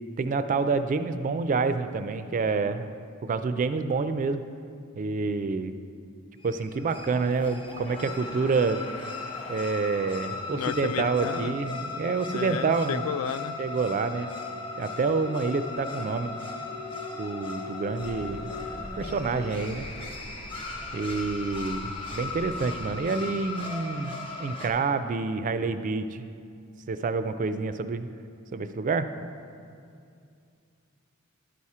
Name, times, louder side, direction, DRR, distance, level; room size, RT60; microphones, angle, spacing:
voice 1, 0.2-2.9 3.3-4.4 5.0-5.7 6.4-8.8 9.5-13.1 13.6-14.3 14.8-16.4 17.2-18.5 19.0-19.9 20.9-26.3 26.9-28.1 28.5-29.1, right 4 dB, 40° right, 11 dB, 0.3 m, -28 dB
sound 1, 6.4-24.7, left 3 dB, 25° left, 1.0 m, -37 dB
voice 2, 10.5-11.5 12.3-13.6, left 8 dB, 70° left, 13 dB, 0.3 m, -32 dB
sound 2, 18.0-23.0, equal, ahead, 0.6 m, -44 dB
11.5 x 4.2 x 4.8 m, 2.4 s
head